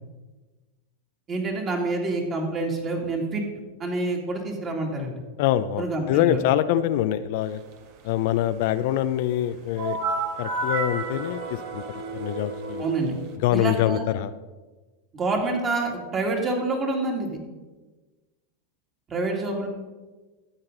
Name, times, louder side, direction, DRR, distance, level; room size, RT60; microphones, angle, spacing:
voice 1, 1.3-3.4 3.8-5.2 5.8-6.4 12.8-13.2 13.5-14.0 15.1-17.3 19.1-19.7, right 2 dB, 25° right, 1 dB, 2.5 m, -27 dB
voice 2, 5.4-7.6 8.0-10.0 10.4-12.8 13.4-14.3, left 12 dB, 60° left, 12 dB, 0.5 m, -25 dB
sound 1, 9.8-13.4, right 3 dB, 55° right, 1.5 m, -31 dB
13.0 x 8.8 x 3.9 m, 1.2 s
supercardioid pair, 130°, 0 cm